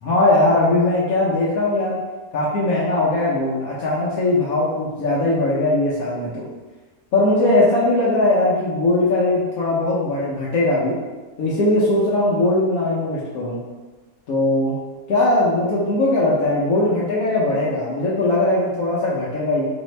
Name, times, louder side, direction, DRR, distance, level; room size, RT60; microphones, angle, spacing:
voice 1, 0.0-2.0 2.3-6.5 7.1-11.0 11.4-13.6 14.3-14.7 15.1-19.7, left 2 dB, 80° left, -7 dB, 1.2 m, -19 dB
4.1 x 2.7 x 3.1 m, 1.3 s
omnidirectional pair, 1.5 m